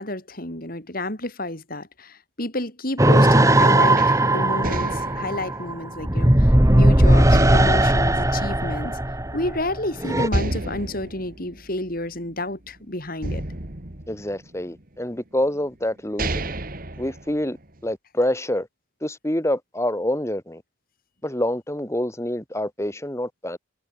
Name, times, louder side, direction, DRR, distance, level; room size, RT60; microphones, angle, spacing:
voice 1, 0.0-9.0 9.3-13.4, left 1 dB, 45° left, 5.3 m, -30 dB
sound 1, 3.0-10.3, right 1 dB, 15° right, 1.8 m, -18 dB
sound 2, 4.0-6.8 7.3-9.2 9.6-9.7 10.3-12.7 13.2-14.8 15.5-15.6 16.0-17.8, right 1 dB, 45° right, 2.3 m, -31 dB
voice 2, 14.1-16.5 17.0-17.6 17.8-18.7 19.0-20.6 21.2-23.6, left 1 dB, 15° left, 1.9 m, -26 dB
head